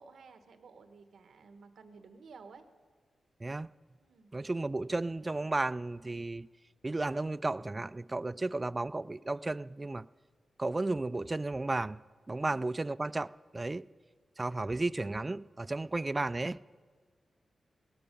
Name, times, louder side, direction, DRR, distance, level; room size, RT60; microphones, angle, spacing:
voice 1, 0.0-2.6 4.0-4.3 12.3-12.6, right 4 dB, 85° right, 1.1 m, -54 dB
voice 2, 4.3-6.5 6.8-10.1 10.6-12.0 12.3-13.3 13.5-13.8 14.4-16.6, right 2 dB, 30° right, 0.3 m, -33 dB
17.5 x 14.0 x 5.3 m
cardioid pair, 65°, 0 cm